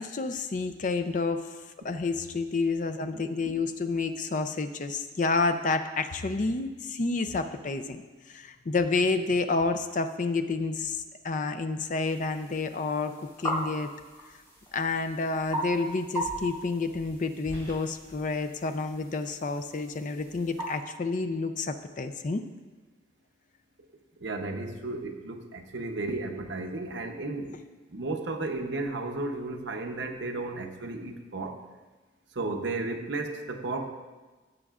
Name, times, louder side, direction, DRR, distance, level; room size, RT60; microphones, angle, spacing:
voice 1, 0.0-1.5 1.8-8.0 8.3-11.0 11.2-13.9 14.7-22.4, left 3 dB, 40° left, 8 dB, 0.5 m, -29 dB
voice 2, 3.1-3.5 24.2-27.6 27.9-31.6 32.3-33.9, right 2 dB, 70° right, 4 dB, 0.8 m, -34 dB
sound 1, 12.0-20.8, right 1 dB, 15° left, 2.8 m, -38 dB
15.5 x 7.2 x 2.4 m, 1.3 s
head